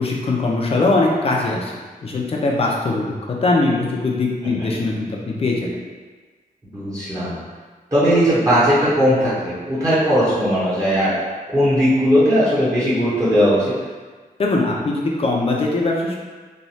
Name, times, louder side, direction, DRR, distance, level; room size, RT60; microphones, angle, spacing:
voice 1, 0.0-1.7 2.0-3.1 3.4-5.7 14.4-16.2, left 2 dB, 40° left, -1 dB, 0.5 m, -21 dB
voice 2, 6.7-7.4 7.9-11.1 11.5-13.7, equal, 20° right, -11 dB, 0.8 m, -18 dB
3.1 x 2.3 x 2.7 m, 1.4 s
wide cardioid pair, 145°, 16 cm